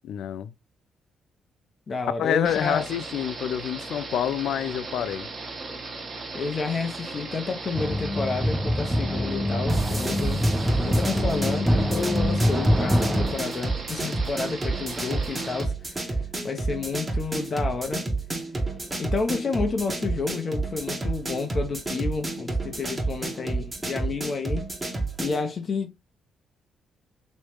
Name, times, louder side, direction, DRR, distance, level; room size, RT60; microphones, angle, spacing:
voice 1, 0.0-0.5 2.2-5.3, left 10 dB, 80° left, 0.3 m, -27 dB
voice 2, 1.9-2.8 6.3-10.4 10.8-16.0 16.4-18.0 19.0-24.7 25.2-26.0, left 4 dB, 45° left, 0.8 m, -30 dB
sound 1, 2.4-15.6, right 3 dB, 40° right, 1.3 m, -37 dB
sound 2, 7.7-13.3, equal, 5° right, 0.7 m, -24 dB
sound 3, 9.7-25.4, right 3 dB, 20° right, 1.2 m, -30 dB
3.2 x 3.1 x 3.1 m
cardioid pair, 90°, 0 cm